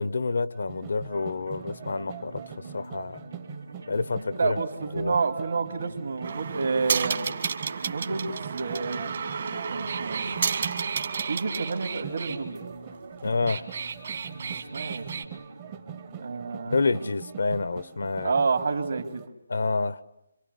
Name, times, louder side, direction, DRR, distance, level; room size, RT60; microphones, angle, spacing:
voice 1, 0.0-2.4 2.7-3.2 3.9-4.6 4.9-5.1 13.2-13.7 16.7-18.3 19.5-20.0, left 3 dB, 75° left, 17 dB, 1.0 m, -28 dB
sound 1, 0.5-19.3, right 11 dB, 25° right, 0.9 m, -44 dB
sound 2, 1.1-17.4, right 2 dB, 85° right, 3.0 m, -44 dB
voice 2, 4.3-7.3 7.8-9.2 9.7-10.3 11.3-12.6 14.5-15.1 16.2-17.0 18.2-19.3, right 4 dB, 70° right, 3 dB, 3.0 m, -29 dB
sound 3, 6.2-12.4 13.3-15.2, right 6 dB, 55° right, 1.8 m, -31 dB
26.5 x 25.5 x 8.2 m, 0.89 s
figure-of-eight pair, 160°, 0 cm